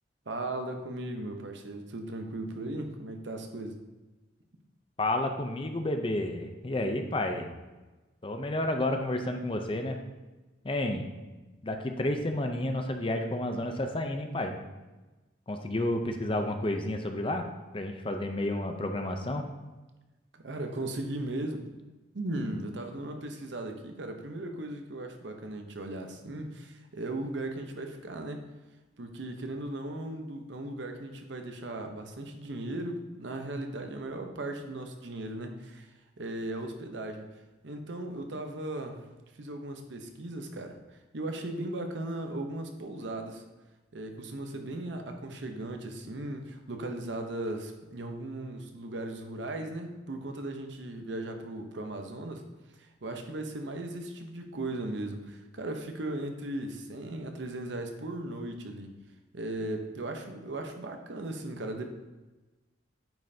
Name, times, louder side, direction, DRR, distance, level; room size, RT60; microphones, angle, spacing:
voice 1, 0.3-3.8 20.4-21.7 22.1-28.4 29.0-35.9 36.2-37.3 37.6-39.1 39.4-43.4 43.9-52.4 52.8-58.9 59.3-61.8, right 1 dB, 70° right, 5 dB, 0.8 m, -37 dB
voice 2, 5.0-7.5 8.2-10.0 10.6-11.1 11.6-14.6 15.5-17.4 17.7-19.4, left 1 dB, 30° left, 5 dB, 0.5 m, -31 dB
9.0 x 5.4 x 2.8 m, 1.2 s
head